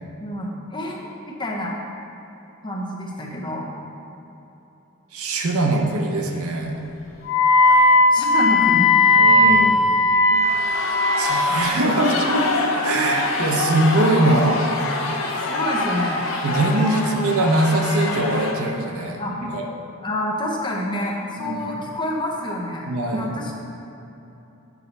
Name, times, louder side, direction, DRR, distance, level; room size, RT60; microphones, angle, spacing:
voice 1, 0.2-1.7 2.6-3.7 8.1-8.9 13.4-13.5 15.5-16.3 17.0-17.1 19.2-19.4 20.0-22.9 23.1-23.5, left 1 dB, 20° left, -2 dB, 0.7 m, -27 dB
voice 2, 5.1-6.8 9.2-9.9 11.2-12.5 12.8-14.7 16.4-19.6 21.4-21.6 22.9-23.3, right 1 dB, 80° right, 2 dB, 0.8 m, -22 dB
sound 1, 6.3-6.5 6.8-6.9 7.5-7.9 9.0-9.5 10.1-18.5, left 2 dB, 70° left, 0.8 m, -26 dB
Wind instrument woodwind instrument, 7.3-11.3, left 2 dB, 45° left, 1.6 m, -16 dB
7.2 x 5.5 x 4.0 m, 3.0 s
head